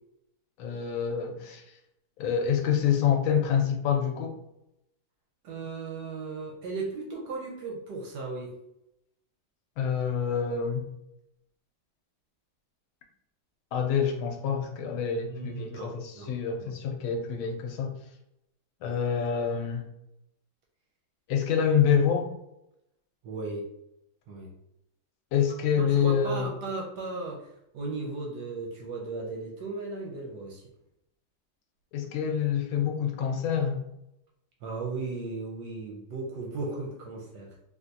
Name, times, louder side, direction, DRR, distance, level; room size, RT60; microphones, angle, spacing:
voice 1, 0.6-1.6 2.2-4.4 9.8-10.8 13.7-18.0 18.8-19.8 21.3-22.3 25.3-26.5 31.9-33.8, left 7 dB, 80° left, 3 dB, 1.4 m, -27 dB
voice 2, 5.4-8.5 15.3-16.3 16.6-16.7 23.2-23.7 24.3-24.5 25.8-27.5 27.7-30.6 34.6-37.5, right 3 dB, 70° right, -1 dB, 1.1 m, -36 dB
3.6 x 2.5 x 2.6 m, 0.82 s
omnidirectional pair, 2.3 m